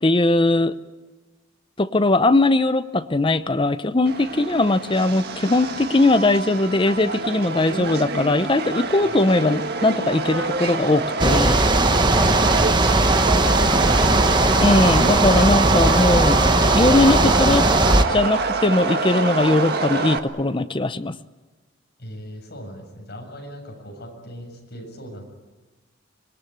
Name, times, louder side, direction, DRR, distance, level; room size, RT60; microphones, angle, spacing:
voice 1, 0.0-0.7 1.8-11.6 13.6-13.7 14.6-16.4 16.7-17.7 18.1-21.2, left 2 dB, 25° left, 12 dB, 0.7 m, -20 dB
Subway metro underground, 4.1-20.2, right 3 dB, 50° right, 1.7 m, -26 dB
sound 1, 11.2-18.0, right 2 dB, 20° right, 1.1 m, -18 dB
voice 2, 22.0-25.2, equal, 50° left, 1 dB, 7.6 m, -39 dB
25.5 x 21.0 x 9.4 m, 1.2 s
head